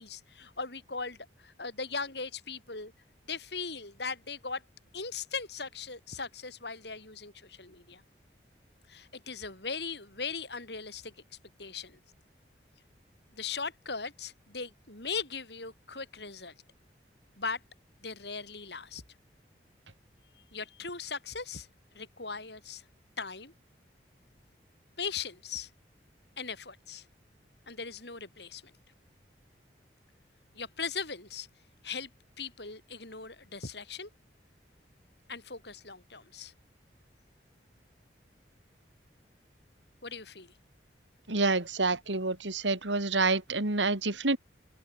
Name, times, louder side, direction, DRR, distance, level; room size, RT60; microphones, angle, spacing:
voice 1, 0.0-2.9 3.3-4.6 4.9-8.0 8.9-11.1 11.6-12.0 13.3-16.5 17.4-17.6 18.0-19.0 20.5-21.7 21.9-22.8 23.2-23.5 25.0-25.7 26.4-27.0 27.7-28.6 30.5-31.5 31.8-32.1 32.4-34.1 35.3-36.5 40.0-40.5, left 5 dB, 65° left, 7.8 m, -39 dB
voice 2, 41.3-44.4, right 3 dB, 90° right, 3.0 m, -28 dB
open air
head